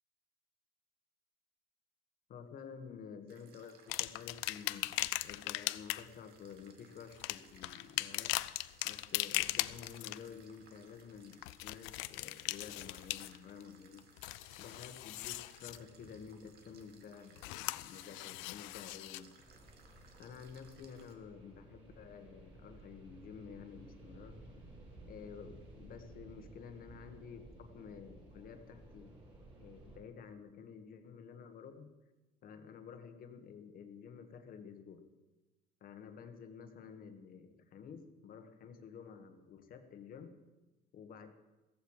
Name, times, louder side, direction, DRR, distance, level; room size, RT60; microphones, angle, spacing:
voice 1, 2.3-5.0 5.2-8.3 8.8-14.1 14.6-19.5 20.2-24.4 25.0-29.2 29.6-31.9 32.4-35.1 35.8-40.3 40.9-41.3, left 6 dB, 45° left, 7 dB, 1.6 m, -51 dB
sound 1, 3.3-21.1, right 5 dB, 55° right, 2.2 m, -64 dB
sound 2, 3.9-6.1 7.1-10.3 11.3-13.6 14.0-15.8 17.4-19.2 20.0-20.1, left 19 dB, 85° left, 0.5 m, -39 dB
sound 3, 19.4-30.0, right 2 dB, 25° right, 6.7 m, -56 dB
16.0 x 14.5 x 4.9 m, 1.1 s
cardioid pair, 145°, 20 cm